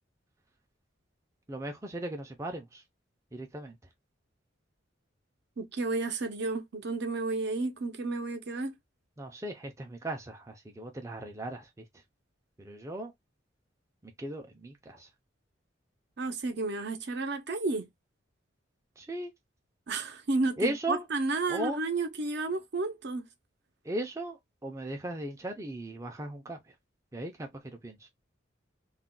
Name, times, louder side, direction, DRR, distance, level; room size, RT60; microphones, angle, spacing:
voice 1, 1.5-2.8 3.3-3.8 9.2-11.9 12.6-13.1 14.0-15.1 19.0-19.3 20.6-21.0 21.5-21.8 23.8-26.6 27.1-27.5 27.8-28.1, right 1 dB, 15° right, 0.4 m, -37 dB
voice 2, 5.6-8.7 16.2-17.9 19.9-23.3, right 3 dB, 60° right, 0.6 m, -32 dB
2.4 x 2.2 x 3.7 m
head